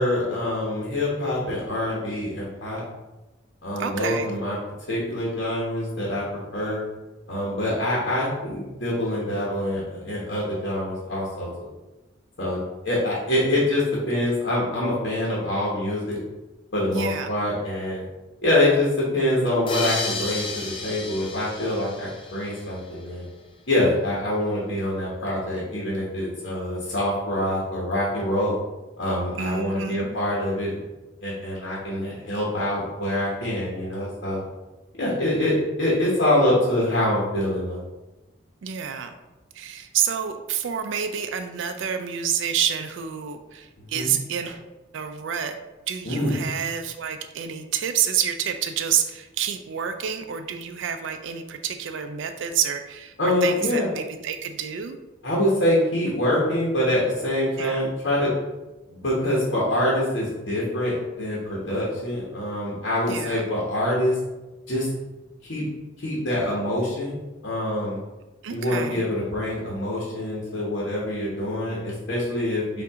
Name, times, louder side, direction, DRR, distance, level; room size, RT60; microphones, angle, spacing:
voice 1, 0.0-2.8 3.6-4.6 4.9-6.2 6.5-6.8 7.3-11.5 12.4-12.6 12.8-16.2 16.7-18.0 18.4-18.9 19.1-23.3 23.7-28.6 29.0-30.8 31.2-34.4 35.0-37.8 43.8-44.1 46.0-46.3 53.2-53.9 55.2-58.3 58.9-64.2 64.7-64.9 65.5-65.6 66.0-67.1 67.4-68.0 68.5-72.8, left 1 dB, 60° left, -5 dB, 1.1 m, -25 dB
voice 2, 3.8-4.4 16.9-17.3 29.4-30.1 38.6-39.2 39.5-44.6 44.9-45.6 45.9-55.0 57.6-57.8 63.1-63.5 68.4-69.0, right 8 dB, 75° right, 7 dB, 0.4 m, -28 dB
sound 1, 19.7-23.0, left 3 dB, 25° left, 0.4 m, -32 dB
5.5 x 2.6 x 3.6 m, 1.1 s
head